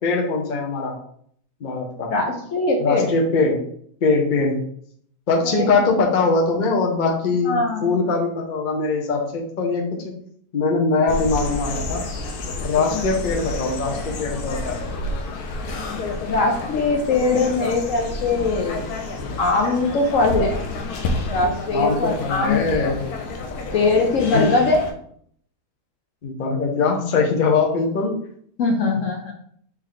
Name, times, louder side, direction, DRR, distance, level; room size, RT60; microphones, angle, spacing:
voice 1, 0.0-1.0 1.6-2.1 2.8-3.6 4.0-4.6 5.3-10.1 10.5-12.0 12.6-14.8 21.7-23.0 24.3-24.5 26.2-28.2, left 4 dB, 40° left, 0 dB, 0.8 m, -21 dB
voice 2, 2.1-3.1 5.4-5.7 7.4-8.0 16.3-18.8 19.4-20.6 21.3-22.6 23.7-24.8 28.6-29.3, left 3 dB, 65° left, 2 dB, 1.0 m, -21 dB
sound 1, 11.1-24.9, left 2 dB, 85° left, 1.2 m, -30 dB
4.3 x 3.2 x 3.8 m, 0.64 s
omnidirectional pair, 1.6 m